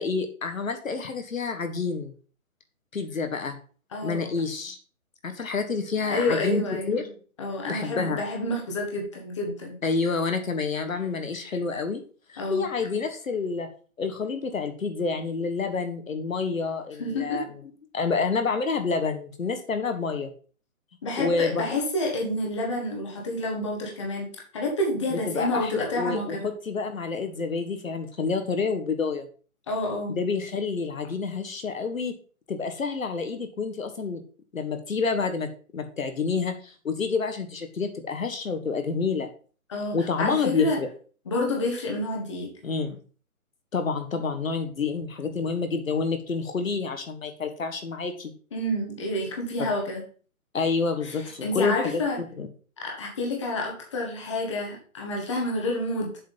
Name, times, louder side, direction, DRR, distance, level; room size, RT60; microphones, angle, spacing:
voice 1, 0.0-2.1 2.9-3.6 4.0-4.8 5.2-7.1 7.7-8.2 9.8-12.0 12.3-13.7 14.0-17.5 17.9-20.3 21.2-21.8 25.1-29.3 30.2-32.1 32.5-34.2 34.5-35.5 35.7-39.3 39.9-40.9 42.6-43.0 43.7-48.3 50.5-52.5, left 4 dB, 65° left, 7 dB, 1.6 m, -28 dB
voice 2, 3.9-4.3 6.1-7.0 7.4-9.8 12.4-12.7 17.0-17.4 21.0-24.3 24.5-26.5 29.7-30.2 39.7-40.8 41.3-42.5 48.5-50.0 51.0-51.2 51.4-52.2 52.8-56.1, left 1 dB, 20° left, -1 dB, 1.6 m, -29 dB
7.3 x 4.9 x 5.4 m, 0.40 s
hypercardioid pair, 175°, 43 cm